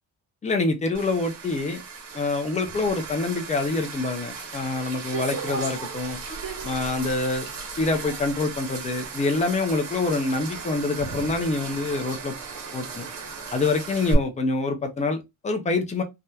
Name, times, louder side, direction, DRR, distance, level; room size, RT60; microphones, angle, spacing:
voice 1, 0.4-1.8 2.1-6.2 6.6-7.5 7.8-12.3 12.7-13.1 13.5-16.0, left 3 dB, 15° left, 0.4 m, -26 dB
sound 1, 0.9-14.1, right 5 dB, 60° right, 1.3 m, -36 dB
3.4 x 2.7 x 2.2 m
cardioid pair, 175°, 47 cm